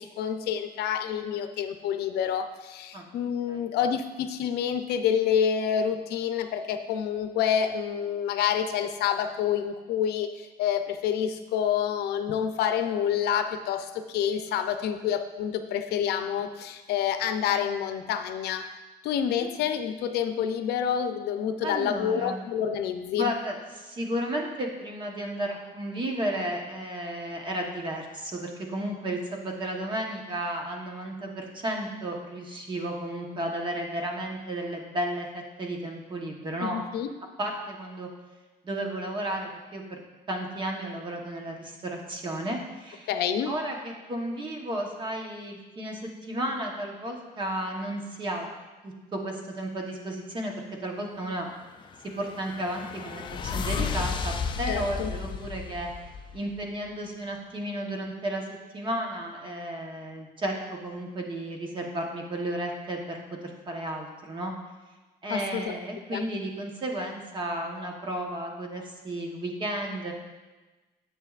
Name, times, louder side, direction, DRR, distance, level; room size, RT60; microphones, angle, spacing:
voice 1, 0.0-18.8 19.0-23.3 36.6-37.1 43.1-43.5 54.7-55.1 65.3-65.7 66.1-66.2, left 8 dB, 85° left, 8 dB, 0.6 m, -28 dB
voice 2, 21.6-22.4 23.1-35.3 35.6-36.8 37.4-38.1 38.6-40.0 40.3-43.1 43.5-48.5 48.8-50.5 50.8-51.5 52.2-55.9 56.3-58.5 58.7-63.2 63.4-64.5 65.2-70.1, right 1 dB, 30° right, 1 dB, 1.1 m, -33 dB
sound 1, 51.8-56.7, left 5 dB, 30° left, 0.4 m, -33 dB
10.0 x 7.5 x 2.4 m, 1.2 s
cardioid pair, 160°, 16 cm